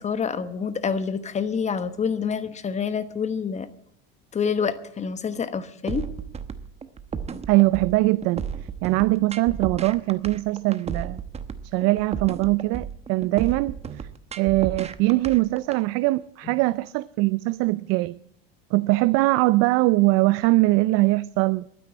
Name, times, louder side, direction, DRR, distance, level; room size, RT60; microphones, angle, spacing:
voice 1, 0.0-3.7 4.3-6.0, left 6 dB, 20° left, 1.1 m, -27 dB
sound 1, 5.9-15.8, right 6 dB, 20° right, 1.0 m, -33 dB
voice 2, 7.5-8.5 8.8-11.2 11.7-14.1 14.4-18.2 18.7-21.7, right 21 dB, 55° right, 0.5 m, -22 dB
12.0 x 9.8 x 9.3 m
supercardioid pair, 120°, 30 cm